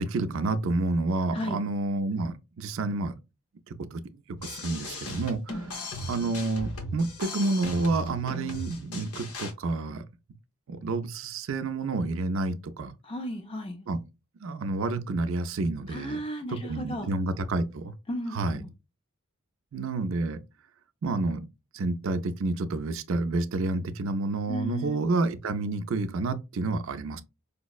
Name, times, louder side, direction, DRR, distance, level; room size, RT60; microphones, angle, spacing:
voice 1, 0.0-3.1 3.9-4.0 4.4-5.4 6.1-10.1 10.7-12.9 13.9-14.0 14.4-16.2 16.5-17.9 18.3-18.6 19.7-20.4 21.0-21.5 21.7-27.2, right 3 dB, 60° right, 0.4 m, -29 dB
sound 1, 4.4-9.5, left 1 dB, 80° left, 1.0 m, -37 dB
voice 2, 13.0-13.9 15.9-17.1 18.1-18.7 24.5-25.1, equal, 25° left, 0.3 m, -34 dB
5.0 x 2.0 x 2.3 m
head